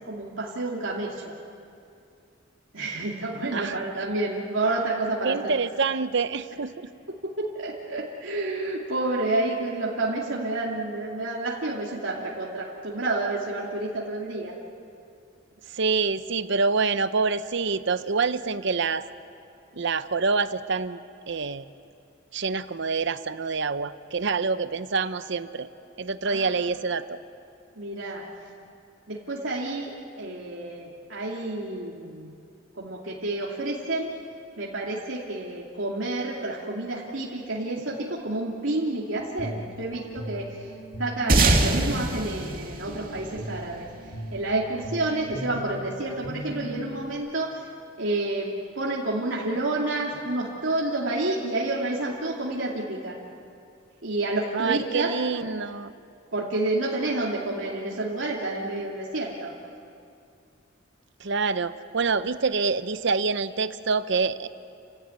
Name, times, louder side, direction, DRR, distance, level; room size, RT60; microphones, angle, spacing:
voice 1, 0.0-1.3 2.7-5.5 7.4-14.5 26.3-26.5 27.8-28.2 29.1-32.3 32.7-34.1 34.6-43.9 44.3-47.7 48.0-48.5 48.7-53.2 54.0-55.1 56.3-59.5, right 2 dB, 80° right, -4 dB, 2.7 m, -29 dB
voice 2, 5.2-6.9 15.7-19.1 19.7-21.0 21.3-21.6 22.3-25.7 26.0-27.2 54.5-55.9 61.2-64.5, right 4 dB, 65° right, 12 dB, 0.9 m, -26 dB
Guitar, 39.1-47.1, right 1 dB, 60° left, 4.1 m, -39 dB
sound 1, 41.3-44.1, right 2 dB, 50° right, 2.5 m, -23 dB
29.5 x 16.0 x 9.5 m, 2.5 s
head